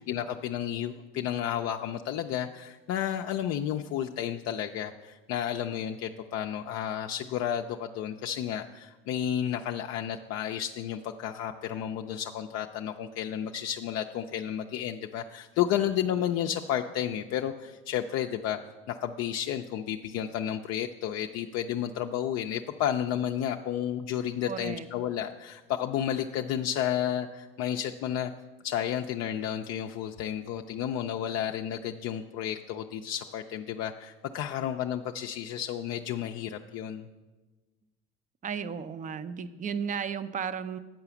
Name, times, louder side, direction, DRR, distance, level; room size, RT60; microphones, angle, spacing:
voice 1, 0.0-18.6 18.9-28.3 28.6-37.1, left 10 dB, 55° left, 4 dB, 0.5 m, -32 dB
voice 2, 24.5-24.9 38.4-40.8, right 7 dB, 25° right, 13 dB, 0.5 m, -34 dB
9.0 x 4.8 x 7.0 m, 1.2 s
supercardioid pair, 85°, 31 cm